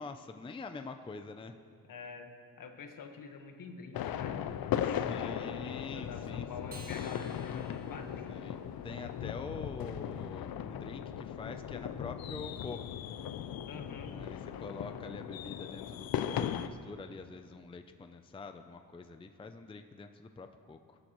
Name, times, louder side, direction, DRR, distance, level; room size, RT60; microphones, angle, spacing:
voice 1, 0.0-1.5 4.8-6.7 8.3-12.8 14.1-21.0, left 3 dB, 15° left, 7 dB, 0.5 m, -45 dB
voice 2, 1.8-2.3 2.6-4.4 4.9-8.5 13.6-14.2, left 5 dB, 65° left, 5 dB, 1.4 m, -47 dB
sound 1, 3.9-16.7, left 9 dB, 90° left, 0.6 m, -38 dB
Acoustic guitar, 6.7-9.3, right 1 dB, 25° right, 1.6 m, -54 dB
22.5 x 11.5 x 3.1 m, 2.2 s
cardioid pair, 115°, 35 cm